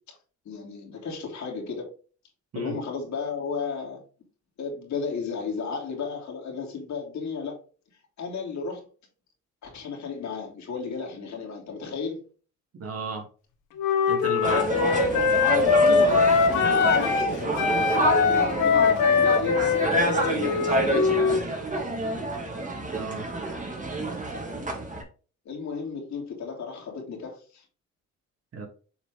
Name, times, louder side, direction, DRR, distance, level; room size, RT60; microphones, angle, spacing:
voice 1, 0.4-1.9 2.5-4.0 4.6-7.6 8.2-8.8 9.6-12.2 15.5-21.4 25.4-27.6, left 5 dB, 70° left, 2.9 m, -33 dB
voice 2, 12.8-13.3 14.1-14.7 22.9-23.2 28.5-28.7, right 4 dB, 50° right, 1.9 m, -34 dB
Wind instrument woodwind instrument, 13.8-17.3 17.6-21.4, left 5 dB, 90° left, 1.4 m, -22 dB
sound 1, 14.4-25.0, right 2 dB, 25° right, 2.3 m, -28 dB
7.3 x 4.0 x 3.6 m
cardioid pair, 90°, 30 cm